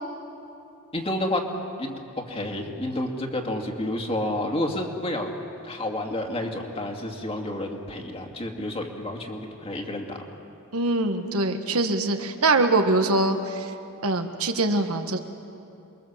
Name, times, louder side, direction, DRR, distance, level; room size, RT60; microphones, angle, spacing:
voice 1, 0.9-1.4 1.8-2.0 2.3-5.3 5.6-10.2, left 1 dB, 25° left, 2 dB, 2.4 m, -30 dB
voice 2, 10.7-13.7 14.0-15.2, right 2 dB, 70° right, 6 dB, 1.5 m, -23 dB
28.0 x 22.0 x 7.5 m, 2.7 s
head